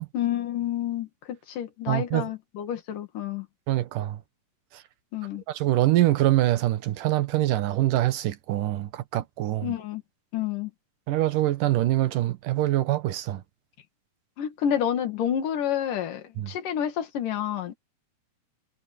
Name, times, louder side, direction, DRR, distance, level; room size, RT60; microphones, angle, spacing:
voice 1, 0.1-3.5 5.1-5.4 9.6-10.0 10.3-10.7 14.4-17.8, left 10 dB, 90° left, 3.5 m, -29 dB
voice 2, 1.9-2.3 3.7-4.2 5.5-9.7 11.1-13.4 16.4-16.5, right 15 dB, 90° right, 2.8 m, -24 dB
omnidirectional pair, 3.6 m